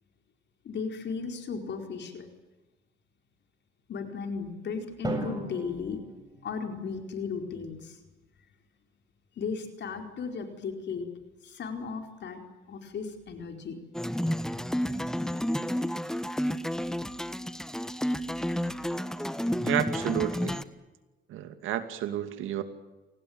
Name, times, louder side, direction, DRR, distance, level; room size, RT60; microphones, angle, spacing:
voice 1, 0.6-2.3 3.9-6.0 6.4-8.0 9.4-11.1 11.4-12.4 12.7-13.8 18.0-18.1, left 5 dB, 60° left, 5 dB, 4.7 m, -35 dB
Drum, 5.0-7.1, right 2 dB, 20° right, 7.6 m, -38 dB
sound 1, 13.9-20.6, equal, 5° left, 1.4 m, -31 dB
voice 2, 19.6-20.6 21.3-22.6, right 11 dB, 90° right, 9 dB, 2.5 m, -31 dB
28.5 x 19.0 x 8.9 m, 1.2 s
cardioid pair, 90°, 20 cm